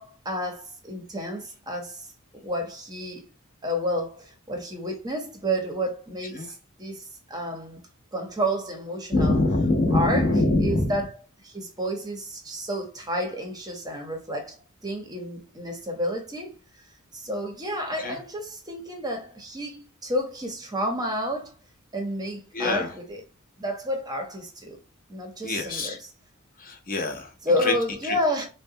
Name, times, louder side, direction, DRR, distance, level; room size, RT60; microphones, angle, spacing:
voice 1, 0.0-2.1 2.4-3.2 3.6-7.8 8.1-9.4 9.9-10.3 10.6-11.1 11.4-14.6 14.8-16.6 17.1-21.5 21.9-23.2 23.6-24.8 25.1-26.0 27.4-28.5, equal, 20° right, 0.8 m, -30 dB
voice 2, 9.1-11.0 18.0-18.2 22.5-22.9 25.4-26.0 26.6-27.3 27.6-27.7 28.0-28.2, left 2 dB, 40° left, 0.8 m, -24 dB
3.9 x 2.2 x 2.7 m
head